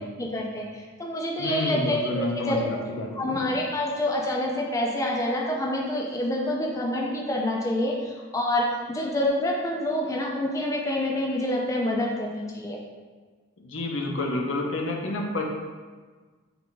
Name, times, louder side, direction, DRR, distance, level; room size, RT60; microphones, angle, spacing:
voice 1, 0.0-2.8 3.2-12.8, left 1 dB, 15° left, -2 dB, 0.4 m, -27 dB
voice 2, 1.4-3.4 13.6-15.4, left 2 dB, 80° left, 0 dB, 0.7 m, -29 dB
5.8 x 2.4 x 3.8 m, 1.4 s
head